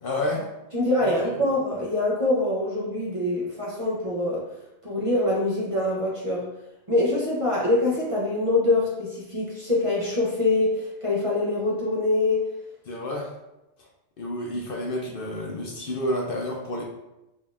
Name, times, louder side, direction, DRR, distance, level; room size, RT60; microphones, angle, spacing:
voice 1, 0.0-0.4 1.0-1.1 12.9-13.3 14.2-16.8, left 1 dB, 60° left, -1 dB, 0.8 m, -29 dB
voice 2, 0.7-4.5 4.8-6.5 6.9-12.4, left 2 dB, 35° right, -5 dB, 0.8 m, -24 dB
3.9 x 3.8 x 2.4 m, 0.93 s
omnidirectional pair, 1.2 m